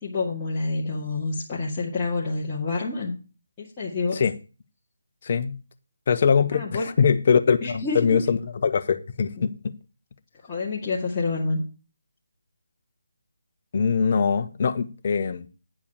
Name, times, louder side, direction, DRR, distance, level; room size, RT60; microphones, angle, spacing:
voice 1, 0.0-3.1 3.6-4.2 6.5-6.9 7.6-8.3 9.4-9.5 10.4-11.6, left 3 dB, 20° left, 2.3 m, -28 dB
voice 2, 5.2-5.6 6.1-9.7 13.7-15.5, left 6 dB, 45° left, 0.9 m, -22 dB
10.0 x 4.8 x 7.2 m
figure-of-eight pair, 155°, 0 cm